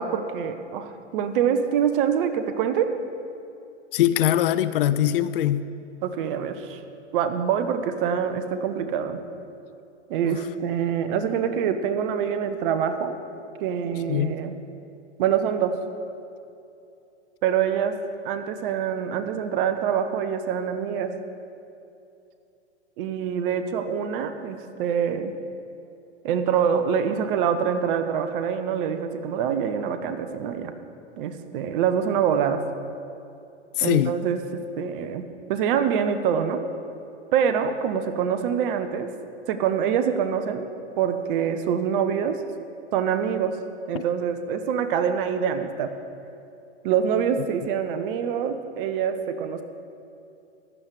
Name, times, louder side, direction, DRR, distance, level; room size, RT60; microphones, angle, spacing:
voice 1, 0.0-2.9 6.0-6.8 7.1-9.2 10.1-13.1 13.6-14.5 15.2-15.7 17.4-17.9 18.2-21.1 23.0-25.3 26.2-30.7 31.2-32.6 33.8-36.6 37.3-39.1 39.5-40.7 41.0-42.4 42.9-43.6 43.9-45.9 46.8-49.6, right 8 dB, 45° right, 9 dB, 1.2 m, -25 dB
voice 2, 3.9-5.6 10.2-10.4 14.1-14.3 33.8-34.2 43.9-44.0, left 12 dB, 50° left, 14 dB, 0.6 m, -22 dB
15.5 x 11.5 x 4.8 m, 2.7 s
hypercardioid pair, 110°, 36 cm